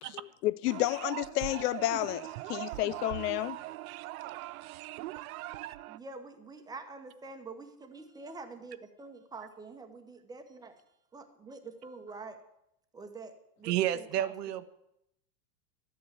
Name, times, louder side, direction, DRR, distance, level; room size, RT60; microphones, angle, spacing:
voice 1, 0.0-3.6, left 17 dB, 75° left, 0.6 m, -31 dB
sound 1, 0.7-6.0, right 18 dB, 65° right, 0.5 m, -41 dB
voice 2, 5.9-10.7 11.1-12.4 12.9-14.6, right 3 dB, 10° right, 1.0 m, -46 dB
voice 3, 13.6-14.7, right 12 dB, 80° right, 1.1 m, -30 dB
12.5 x 8.7 x 8.3 m
supercardioid pair, 145°, 47 cm